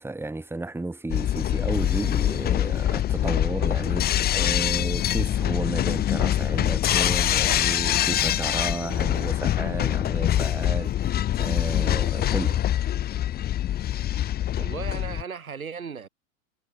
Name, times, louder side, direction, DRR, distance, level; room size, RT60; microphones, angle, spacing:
voice 1, 0.0-12.6, right 2 dB, 5° right, 2.7 m, -33 dB
sound 1, 1.1-15.2, left 12 dB, 25° left, 0.9 m, -24 dB
voice 2, 14.6-16.1, right 6 dB, 85° right, 2.9 m, -36 dB
figure-of-eight pair, 90°, 41 cm